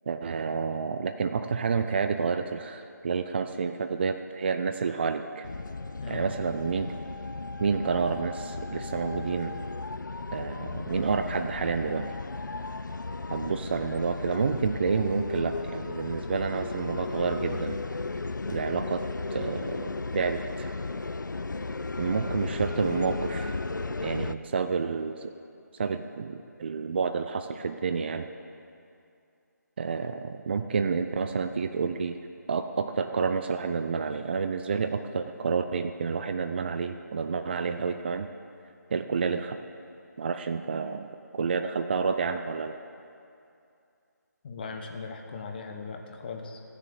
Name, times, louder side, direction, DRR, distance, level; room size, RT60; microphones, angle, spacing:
voice 1, 0.1-5.5 6.1-7.0 7.6-9.5 10.3-12.1 13.3-17.8 18.5-19.1 19.3-20.7 22.0-23.6 24.0-25.3 25.8-28.3 29.8-32.2 32.5-38.3 38.9-39.6 40.2-42.8, right 5 dB, 35° right, 8 dB, 0.4 m, -29 dB
sound 1, 5.4-24.3, left 3 dB, 85° left, 0.4 m, -35 dB
voice 2, 6.0-6.3 44.4-46.6, left 4 dB, 30° left, 4 dB, 1.0 m, -38 dB
14.5 x 6.7 x 7.0 m, 2.5 s
figure-of-eight pair, 155°, 10 cm